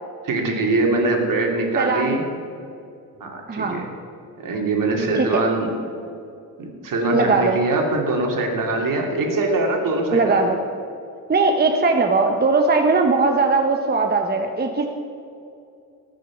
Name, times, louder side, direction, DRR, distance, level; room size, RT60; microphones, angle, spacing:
voice 1, 0.2-2.2 3.2-3.9 4.4-5.7 6.6-10.4, right 2 dB, 55° right, 1 dB, 2.7 m, -22 dB
voice 2, 1.8-2.2 3.5-3.9 5.1-5.4 7.1-7.6 10.1-10.6 11.3-14.9, right 3 dB, 25° right, 3 dB, 0.9 m, -19 dB
18.5 x 6.5 x 7.2 m, 2.6 s
cardioid pair, 105°, 38 cm